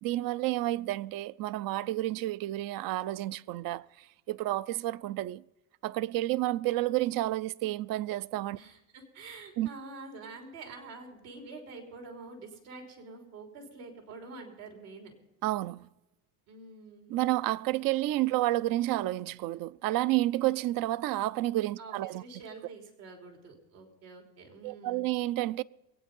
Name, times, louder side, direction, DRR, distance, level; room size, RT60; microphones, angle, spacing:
voice 1, 0.0-5.4 5.8-8.6 9.6-9.7 15.4-15.9 17.1-22.2 24.6-25.6, right 16 dB, 50° right, 0.5 m, -30 dB
voice 2, 8.5-15.1 16.5-17.2 21.8-25.1, right 3 dB, 80° right, 3.6 m, -47 dB
22.0 x 9.1 x 5.4 m
hypercardioid pair, 75°, 43 cm